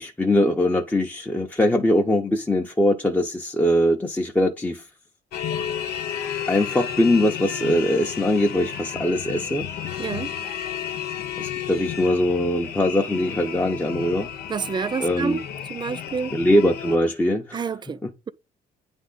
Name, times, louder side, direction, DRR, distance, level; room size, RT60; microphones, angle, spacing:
voice 1, 0.0-4.8 6.5-9.6 11.4-14.3 15.0-15.4 16.3-17.7 18.0-18.1, left 1 dB, 10° left, 0.8 m, -22 dB
sound 1, 5.3-17.0, left 9 dB, 70° left, 1.0 m, -32 dB
voice 2, 10.0-10.3 14.5-15.4 15.7-16.3 17.5-18.0, right 6 dB, 25° right, 0.5 m, -28 dB
9.3 x 3.6 x 4.0 m
cardioid pair, 110°, 17 cm